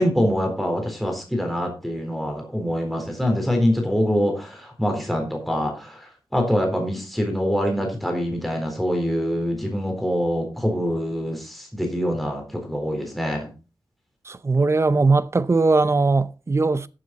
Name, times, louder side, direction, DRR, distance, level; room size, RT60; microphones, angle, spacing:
voice 1, 0.0-13.5, equal, ahead, 3.9 m, -24 dB
voice 2, 14.3-16.9, right 3 dB, 30° right, 0.6 m, -19 dB
14.0 x 7.8 x 4.1 m
wide cardioid pair, 110°, 9 cm